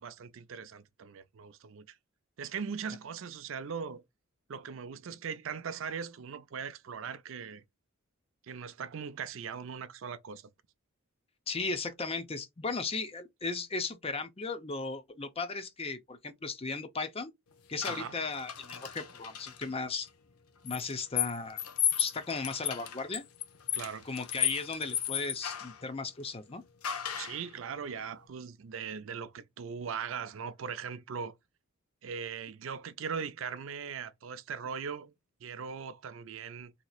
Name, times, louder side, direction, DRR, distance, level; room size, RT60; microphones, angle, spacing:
voice 1, 0.0-2.0 2.4-4.0 4.5-7.6 8.5-10.5 17.9-18.2 23.7-24.0 27.2-31.3 32.0-35.1 35.4-36.7, right 6 dB, 60° right, 0.4 m, -40 dB
voice 2, 11.5-17.3 17.7-20.1 20.6-21.6 21.9-23.2 24.0-26.6, left 4 dB, 25° left, 0.6 m, -36 dB
sound 1, 17.8-19.7 20.7-25.8 26.8-27.5, left 10 dB, 85° left, 0.7 m, -34 dB
4.1 x 2.9 x 2.3 m
head